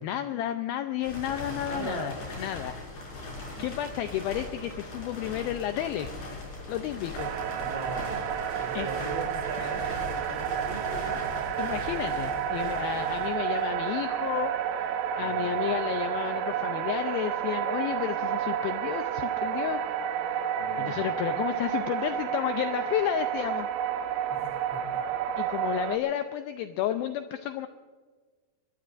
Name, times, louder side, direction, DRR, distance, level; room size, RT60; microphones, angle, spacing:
voice 1, 0.0-2.8 3.6-6.1 6.7-7.3 7.6-7.7 8.7-8.9 9.6-9.7 11.6-19.8 20.2-20.4 20.8-23.7 25.4-27.7, left 11 dB, 85° left, 8 dB, 2.1 m, -32 dB
sound 1, 1.0-13.9, left 2 dB, 45° left, 6.5 m, -40 dB
voice 2, 1.6-2.2 3.5-3.8 7.6-11.2 12.8-13.1 15.2-15.7 20.6-21.2 24.3-25.0, right 3 dB, 45° right, 3 dB, 2.7 m, -41 dB
sound 2, 7.2-26.0, right 9 dB, 85° right, 2.0 m, -30 dB
22.5 x 21.5 x 2.6 m, 1.4 s
omnidirectional pair, 5.0 m